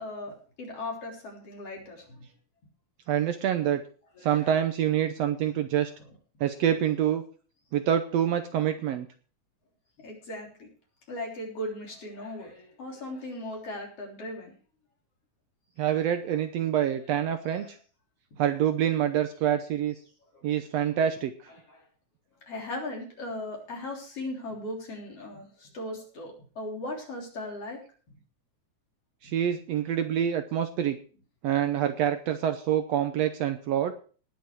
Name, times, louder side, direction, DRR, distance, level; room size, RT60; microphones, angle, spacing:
voice 1, 0.0-2.3 4.1-4.5 10.0-10.7 11.1-14.5 17.3-17.8 20.3-20.4 21.5-21.9 22.4-27.8 28.1-28.2, left 1 dB, 50° left, 0 dB, 4.5 m, -38 dB
voice 2, 3.1-3.8 4.2-5.9 6.4-7.2 7.7-9.1 15.8-17.7 18.4-20.0 20.4-21.3 29.2-31.0 31.4-33.9, right 10 dB, 70° right, 8 dB, 1.7 m, -26 dB
19.0 x 6.9 x 4.7 m, 0.40 s
omnidirectional pair, 3.5 m